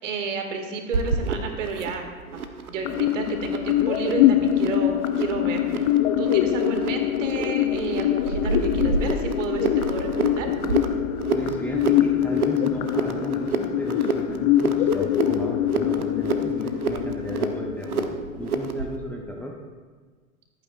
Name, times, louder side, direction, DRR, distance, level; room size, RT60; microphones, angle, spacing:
voice 1, 0.0-2.0 2.3-5.9 6.2-10.5, right 4 dB, 55° right, 4 dB, 2.1 m, -31 dB
sound 1, 0.9-18.9, right 4 dB, 80° right, 1.1 m, -30 dB
sound 2, 2.8-18.8, left 12 dB, 30° left, 0.5 m, -24 dB
voice 2, 11.3-19.5, left 1 dB, 5° left, -1 dB, 0.9 m, -34 dB
25.5 x 9.1 x 2.5 m, 1.4 s
figure-of-eight pair, 100°, 43 cm